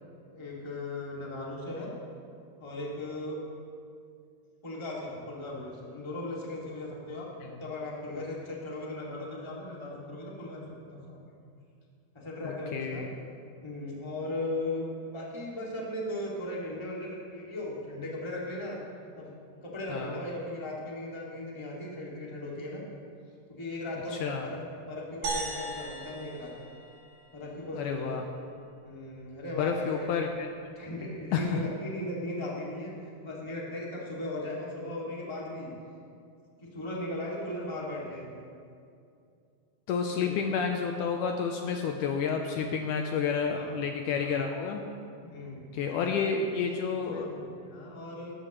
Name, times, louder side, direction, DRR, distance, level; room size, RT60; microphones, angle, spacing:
voice 1, 0.3-1.9 2.6-3.4 4.6-7.3 7.6-11.3 12.1-13.0 13.6-14.9 15.1-18.8 19.1-22.8 23.5-24.6 24.9-26.5 27.3-28.2 28.8-30.1 30.7-35.7 36.6-38.3 40.2-40.3 43.5-44.3 45.2-45.6 46.2-48.5, left 1 dB, 10° left, -4 dB, 1.5 m, -37 dB
voice 2, 12.4-13.1 19.9-20.2 24.2-24.5 27.7-28.2 29.6-30.5 31.3-31.6 39.9-44.8 45.7-47.3, left 6 dB, 80° left, 3 dB, 2.0 m, -30 dB
sound 1, 25.2-27.7, right 3 dB, 90° right, 4.2 m, -38 dB
19.0 x 13.5 x 3.1 m, 2.4 s
omnidirectional pair, 4.0 m